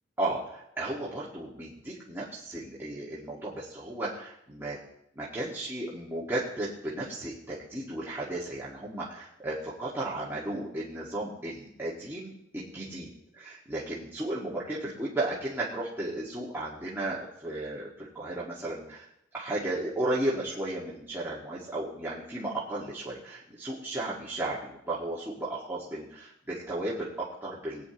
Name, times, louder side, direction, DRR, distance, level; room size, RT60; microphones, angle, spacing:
voice 1, 0.2-4.8 5.1-19.1 19.3-27.8, right 1 dB, 15° right, -8 dB, 1.7 m, -34 dB
20.0 x 9.5 x 3.0 m, 0.80 s
head